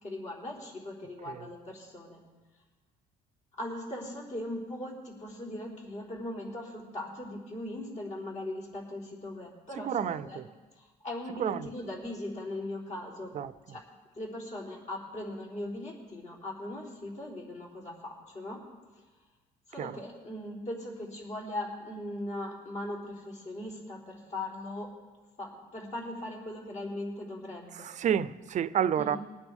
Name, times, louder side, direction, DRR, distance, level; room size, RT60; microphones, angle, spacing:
voice 1, 0.0-2.2 3.6-10.5 10.8-13.3 13.7-13.8 14.2-18.6 19.7-24.9 25.4-27.9 28.9-29.2, left 1 dB, 45° left, 3.7 m, -39 dB
voice 2, 9.8-10.5 11.4-11.7 13.3-13.5 19.8-19.9 27.7-29.2, right 9 dB, 45° right, 0.5 m, -30 dB
22.0 x 9.4 x 3.6 m
cardioid pair, 110°, 17 cm